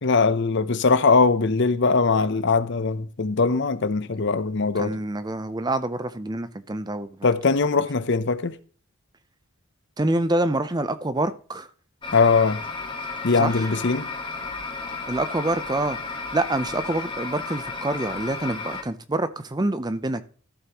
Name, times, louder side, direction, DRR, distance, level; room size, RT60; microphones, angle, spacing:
voice 1, 0.0-5.0 7.2-8.6 12.1-12.6 13.2-14.1, left 4 dB, 50° left, 0.6 m, -21 dB
voice 2, 4.8-7.3 10.0-11.7 13.4-13.7 15.1-20.2, right 2 dB, 20° right, 0.6 m, -26 dB
sound 1, 12.0-18.8, left 3 dB, 20° left, 1.5 m, -33 dB
14.0 x 7.3 x 3.0 m
head